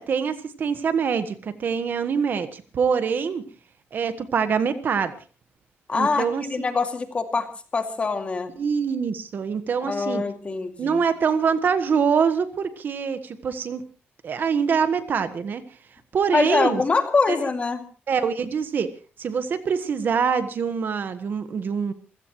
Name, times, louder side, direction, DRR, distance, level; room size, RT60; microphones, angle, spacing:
voice 1, 0.0-3.4 3.9-5.1 5.9-6.4 8.6-10.2 10.8-13.8 14.2-15.6 16.1-16.8 17.3-17.4 18.1-18.9 19.2-21.9, right 6 dB, 50° right, 11 dB, 1.4 m, -24 dB
voice 2, 5.9-8.5 9.9-11.0 16.3-17.8, left 4 dB, 30° left, 6 dB, 2.4 m, -24 dB
27.5 x 16.5 x 3.1 m, 0.35 s
wide cardioid pair, 145°, 4 cm